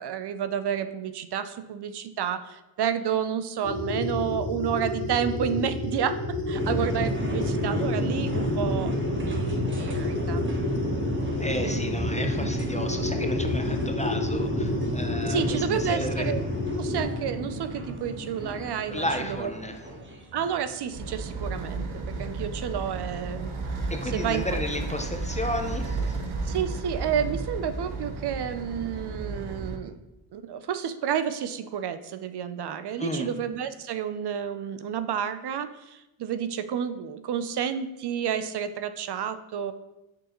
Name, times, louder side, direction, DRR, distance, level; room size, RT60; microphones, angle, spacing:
voice 1, 0.0-8.9 9.2-10.5 11.6-11.8 15.3-16.4 16.8-19.0 19.4-19.5 20.3-21.9 22.2-23.6 24.1-24.4 26.4-30.0 30.3-39.7, right 8 dB, 55° right, 11 dB, 0.5 m, -30 dB
sound 1, 3.6-17.0, left 3 dB, 40° left, 1.3 m, -30 dB
sound 2, 6.5-21.5, right 1 dB, 25° right, 1.1 m, -32 dB
voice 2, 11.4-16.3 18.9-19.8 23.9-26.5 33.0-33.3, left 1 dB, 15° left, 5 dB, 0.4 m, -33 dB
sound 3, 20.9-29.8, right 3 dB, 80° right, 0.8 m, -33 dB
6.4 x 4.9 x 2.9 m, 0.96 s
cardioid pair, 80°, 49 cm